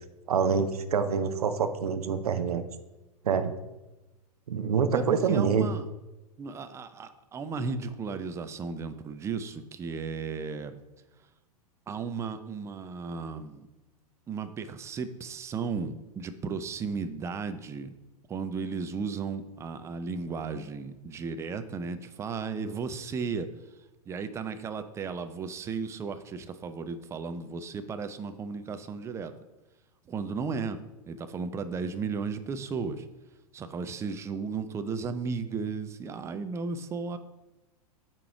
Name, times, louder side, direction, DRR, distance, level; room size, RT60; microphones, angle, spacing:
voice 1, 0.3-2.6 3.2-3.5 4.5-5.7, right 6 dB, 70° right, 10 dB, 0.6 m, -26 dB
voice 2, 4.9-5.9 6.4-10.8 11.9-13.7 14.3-18.0 18.3-23.5 24.1-29.3 30.1-30.8 31.1-33.1 33.5-37.2, right 5 dB, 15° right, 10 dB, 0.4 m, -35 dB
8.5 x 3.0 x 4.8 m, 1.0 s
figure-of-eight pair, 100°, 20 cm